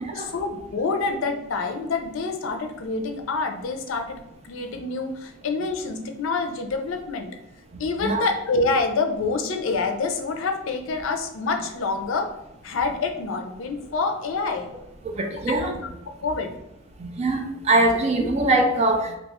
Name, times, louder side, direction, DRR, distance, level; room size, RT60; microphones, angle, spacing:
voice 1, 0.1-4.2 4.4-7.3 7.8-12.3 12.6-14.7 15.6-16.5 18.2-18.3, left 3 dB, 75° left, 5 dB, 0.5 m, -27 dB
voice 2, 15.0-15.7 17.0-19.1, right 2 dB, 30° right, 3 dB, 0.4 m, -22 dB
2.7 x 2.3 x 4.0 m, 0.87 s
head